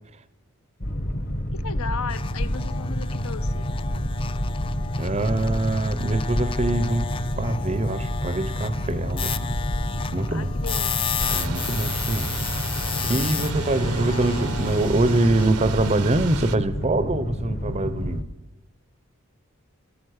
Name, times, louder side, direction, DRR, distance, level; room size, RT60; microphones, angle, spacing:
Boat Water vehicle, 0.8-18.2, equal, 40° left, 1.0 m, -29 dB
voice 1, 1.5-3.7 10.3-11.2, left 5 dB, 70° left, 0.7 m, -36 dB
sound 1, 2.1-15.5, left 6 dB, 25° left, 0.4 m, -33 dB
voice 2, 5.0-7.1 7.4-9.5 10.1-10.5 11.3-12.3 13.0-18.3, right 2 dB, 30° right, 0.6 m, -24 dB
Thunder / Rain, 11.2-16.6, right 4 dB, 80° right, 0.8 m, -33 dB
13.5 x 13.0 x 6.4 m
head